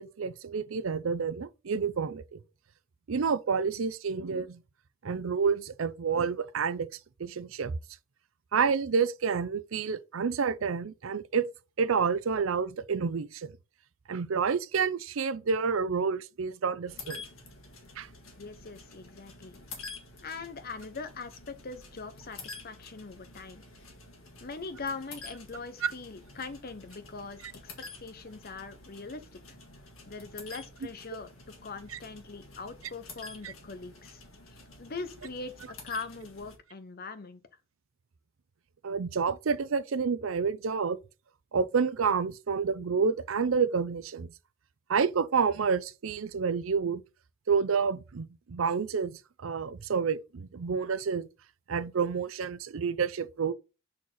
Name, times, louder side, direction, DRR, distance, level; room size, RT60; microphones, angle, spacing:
voice 1, 0.0-2.4 3.1-4.6 5.0-6.9 7.2-7.8 8.5-11.5 11.8-13.5 14.1-17.2 18.0-18.1 25.8-25.9 27.4-27.5 31.9-32.0 33.4-33.5 38.8-41.0 41.5-44.3 44.9-47.0 47.5-51.3 51.7-53.5, right 5 dB, 75° right, 0.5 m, -29 dB
sound 1, 16.9-36.6, left 3 dB, 80° left, 1.8 m, -49 dB
voice 2, 18.4-19.6 20.2-23.6 24.4-27.4 28.0-29.4 30.1-31.3 31.6-34.2 34.5-37.4, left 4 dB, 45° left, 0.8 m, -41 dB
6.3 x 4.4 x 3.8 m
head